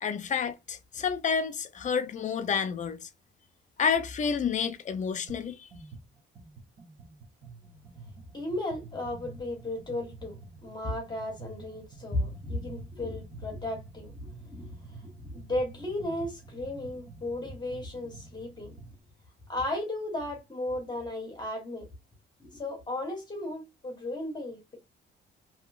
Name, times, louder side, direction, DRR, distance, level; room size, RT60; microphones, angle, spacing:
voice 1, 0.0-3.1 3.8-5.7, left 6 dB, 35° left, 0.5 m, -29 dB
sound 1, 5.3-5.4 5.7-19.0, right 3 dB, 40° right, 0.7 m, -48 dB
voice 2, 8.3-18.8 19.5-21.9 22.4-24.8, left 1 dB, 20° left, 0.9 m, -35 dB
2.9 x 2.8 x 2.3 m
cardioid pair, 140°, 21 cm